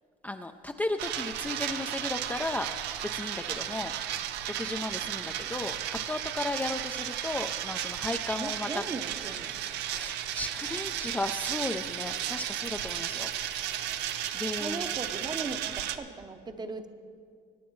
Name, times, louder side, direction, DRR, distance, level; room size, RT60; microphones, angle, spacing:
voice 1, 0.2-2.7 3.0-3.9 4.6-5.8 6.1-8.8 9.9-13.3 14.3-14.9, left 2 dB, 10° left, 5 dB, 0.4 m, -35 dB
sound 1, 1.0-16.0, right 11 dB, 85° right, 0.6 m, -34 dB
voice 2, 8.3-9.6 14.6-16.9, right 3 dB, 25° right, 8 dB, 0.8 m, -38 dB
22.0 x 9.1 x 3.1 m, 2.2 s
cardioid pair, 110°, 17 cm